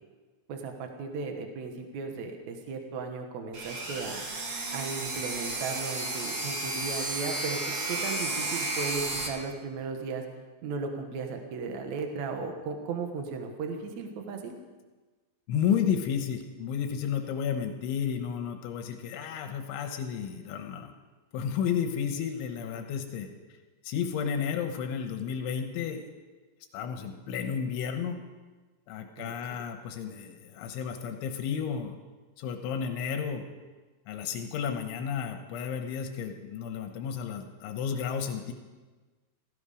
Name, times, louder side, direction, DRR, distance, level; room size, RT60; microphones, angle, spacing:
voice 1, 0.5-4.2 4.7-10.2 10.6-14.6 29.2-29.6, right 4 dB, 80° right, 4 dB, 1.6 m, -36 dB
sound 1, 3.5-9.3, right 2 dB, 60° right, 1.2 m, -33 dB
voice 2, 15.5-20.9 21.3-23.3 23.8-26.1 26.7-28.2 28.9-32.0 32.4-33.4 34.1-38.5, left 7 dB, 85° left, 6 dB, 3.4 m, -32 dB
17.0 x 16.0 x 5.0 m, 1.3 s
omnidirectional pair, 5.3 m